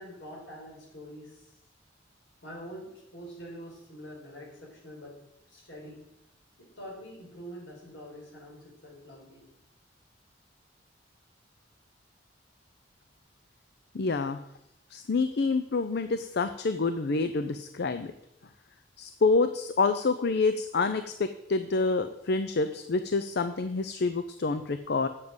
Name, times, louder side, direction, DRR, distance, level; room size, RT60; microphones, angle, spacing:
voice 1, 0.0-1.5 2.4-5.2 5.4-6.0 6.6-9.5, equal, 75° left, -2 dB, 5.0 m, -45 dB
voice 2, 13.9-14.4 14.9-18.1 19.0-25.1, left 3 dB, 60° left, 10 dB, 0.5 m, -27 dB
7.5 x 7.4 x 7.9 m, 0.82 s
head